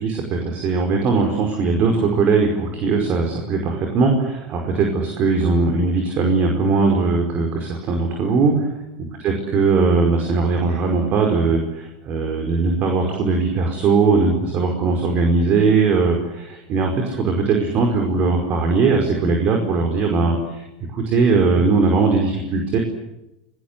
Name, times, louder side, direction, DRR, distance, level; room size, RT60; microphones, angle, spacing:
voice 1, 0.0-8.7 9.1-20.6 20.9-22.8, right 4 dB, 45° right, 3 dB, 5.1 m, -19 dB
28.5 x 19.5 x 8.3 m, 0.90 s
hypercardioid pair, 105°, 4 cm